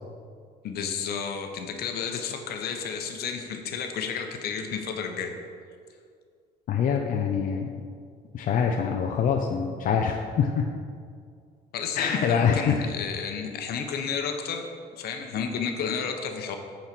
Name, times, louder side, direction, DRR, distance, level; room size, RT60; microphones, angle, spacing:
voice 1, 0.6-5.4 11.7-16.6, left 6 dB, 70° left, 5 dB, 1.0 m, -32 dB
voice 2, 6.7-7.7 8.3-10.6 12.0-12.8, left 7 dB, 55° left, 2 dB, 0.6 m, -25 dB
8.9 x 4.4 x 6.0 m, 2.2 s
cardioid pair, 110°, 17 cm